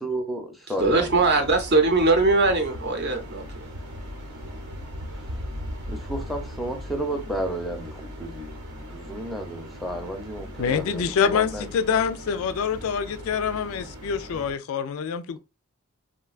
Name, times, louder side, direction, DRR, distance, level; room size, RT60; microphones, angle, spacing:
voice 1, 0.0-1.1 5.9-8.5 8.9-11.7, right 1 dB, ahead, 0.5 m, -32 dB
voice 2, 0.8-3.6, right 3 dB, 50° right, 0.6 m, -21 dB
sound 1, 0.8-14.5, equal, 85° right, 0.9 m, -38 dB
voice 3, 10.6-15.4, left 7 dB, 65° left, 0.3 m, -26 dB
3.6 x 2.2 x 2.3 m
head